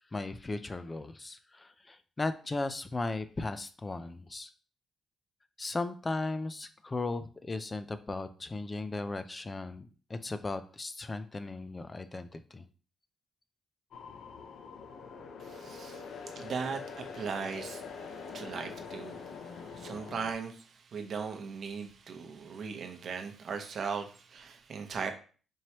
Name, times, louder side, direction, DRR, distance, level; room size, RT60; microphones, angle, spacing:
voice 1, 0.1-4.5 5.6-12.6, left 3 dB, 25° left, 11 dB, 0.4 m, -36 dB
sound 1, 13.9-20.3, left 5 dB, 65° left, 0.6 m, -44 dB
voice 2, 15.4-16.0 16.3-19.2 19.5-25.1, right 5 dB, 55° right, 5 dB, 0.8 m, -38 dB
4.5 x 3.0 x 2.9 m, 0.39 s
cardioid pair, 90°, 0 cm